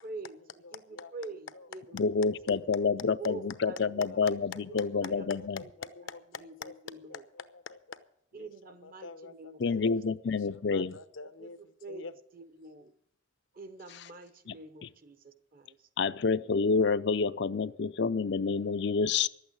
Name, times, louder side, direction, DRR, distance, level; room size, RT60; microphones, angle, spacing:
voice 1, 0.0-0.4 0.7-0.8 1.1-2.0 2.4-2.5 3.2-4.0 4.7-5.2 6.4-7.2 8.3-9.6 11.4-11.5 11.8-12.1 12.3-12.9 13.5-15.8, right 2 dB, 50° right, 11 dB, 0.9 m, -45 dB
voice 2, 0.6-1.7 2.6-3.1 3.5-4.4 4.7-4.9 5.3-8.0 8.3-9.8 10.2-12.1, left 5 dB, 85° left, 11 dB, 0.9 m, -46 dB
voice 3, 1.9-5.6 9.6-10.9 13.9-14.0 14.5-14.6 14.8-14.9 16.0-19.3, left 4 dB, 60° left, 13 dB, 0.5 m, -28 dB
12.0 x 8.6 x 8.7 m, 0.74 s
head